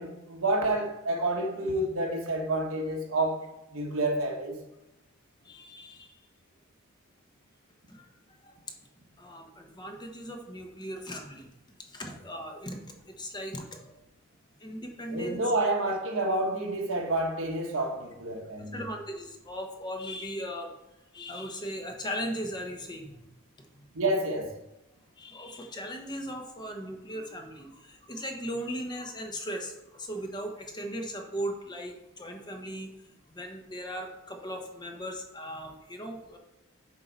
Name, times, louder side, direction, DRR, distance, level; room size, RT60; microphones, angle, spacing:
voice 1, 0.0-3.4 3.7-4.6 15.1-18.8 23.9-24.6, right 2 dB, 65° right, 1.3 m, -29 dB
voice 2, 5.4-6.2 7.9-8.1 8.4-8.6 9.2-11.5 11.9-14.0 14.6-15.4 18.7-20.7 21.1-23.1 25.2-32.9 33.3-36.4, equal, 20° left, 0.9 m, -38 dB
7.8 x 4.8 x 4.1 m
head